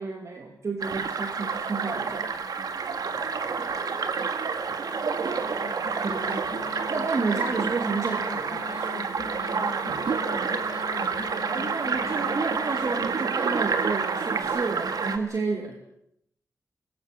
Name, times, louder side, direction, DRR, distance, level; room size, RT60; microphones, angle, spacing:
voice 1, 0.0-2.3 6.0-6.5 6.9-8.9 11.5-15.8, right 4 dB, 55° right, 3 dB, 2.5 m, -31 dB
sound 1, 0.8-15.2, right 5 dB, 90° right, 1.8 m, -29 dB
voice 2, 2.9-6.4 9.5-11.4, right 1 dB, 25° right, 1 dB, 7.3 m, -50 dB
Alarm, 4.5-14.4, left 5 dB, 80° left, 3.6 m, -42 dB
25.0 x 21.5 x 6.7 m, 0.75 s
wide cardioid pair, 120°, 6 cm